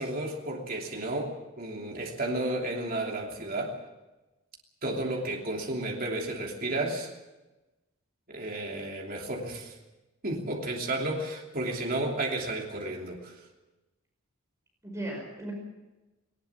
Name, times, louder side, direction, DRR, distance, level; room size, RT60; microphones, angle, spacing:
voice 1, 0.0-3.8 4.8-7.1 8.3-9.8 10.2-13.3, right 2 dB, 45° right, 0 dB, 3.0 m, -32 dB
voice 2, 14.8-15.5, right 1 dB, 15° right, 0 dB, 5.3 m, -37 dB
20.0 x 20.0 x 7.3 m, 1.1 s
head